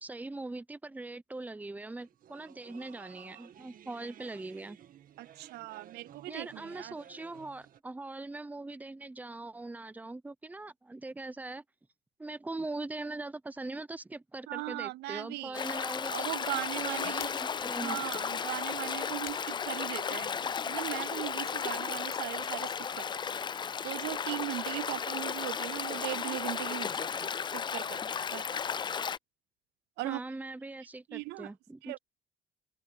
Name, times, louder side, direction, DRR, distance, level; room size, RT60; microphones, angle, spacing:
voice 1, 0.0-4.8 6.3-11.6 12.2-16.3 16.8-18.1 30.0-32.0, right 2 dB, 10° right, 0.7 m, -41 dB
sound 1, 2.0-7.8, right 10 dB, 55° right, 1.8 m, -55 dB
voice 2, 5.2-7.0 14.5-15.6 16.1-17.3 17.8-23.2 23.8-28.5 30.0-30.2 31.1-31.5 31.8-32.0, right 20 dB, 80° right, 0.5 m, -39 dB
Stream, 15.5-29.2, left 7 dB, 25° left, 0.4 m, -34 dB
sound 2, 17.1-20.5 20.9-23.9 24.1-28.3, left 12 dB, 65° left, 5.6 m, -56 dB
open air
cardioid pair, 110°, 17 cm